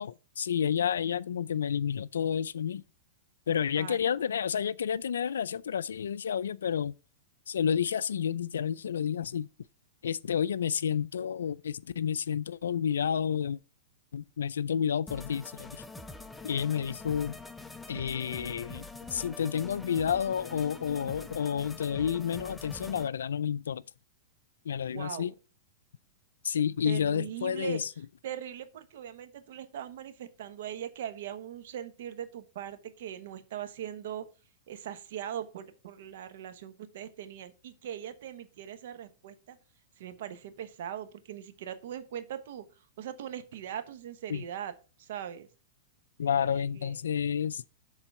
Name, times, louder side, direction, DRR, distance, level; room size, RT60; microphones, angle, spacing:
voice 1, 0.0-2.8 3.5-6.9 7.5-9.5 10.0-13.6 14.1-15.8 16.4-17.4 17.9-23.8 24.7-25.3 26.4-27.9 44.3-44.4 46.2-47.6, left 8 dB, 90° left, 0.3 m, -30 dB
voice 2, 3.8-4.2 24.9-25.3 26.8-27.8 28.2-34.3 34.7-39.6 40.0-42.6 43.0-44.7 45.0-45.5 46.2-47.0, right 10 dB, 70° right, 1.0 m, -40 dB
sound 1, 15.1-23.1, left 3 dB, 5° left, 0.5 m, -45 dB
7.3 x 3.8 x 5.3 m
hypercardioid pair, 125°, 0 cm